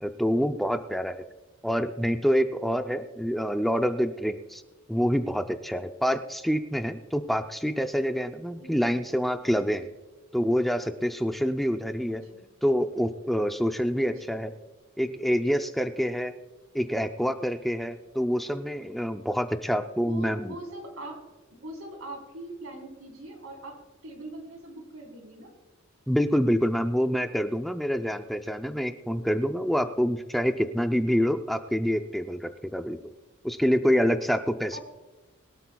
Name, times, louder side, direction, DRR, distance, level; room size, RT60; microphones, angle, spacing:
voice 1, 0.0-1.2 1.6-4.6 4.9-9.9 10.3-12.2 12.6-14.5 15.0-16.3 16.7-20.6 26.1-33.0 33.4-34.8, equal, ahead, 6 dB, 0.5 m, -26 dB
voice 2, 8.6-9.0 12.1-12.4 14.0-14.4 20.0-21.2 21.6-25.5 34.7-34.8, right 1 dB, 90° right, 2 dB, 3.9 m, -42 dB
22.5 x 12.5 x 2.3 m, 1.2 s
head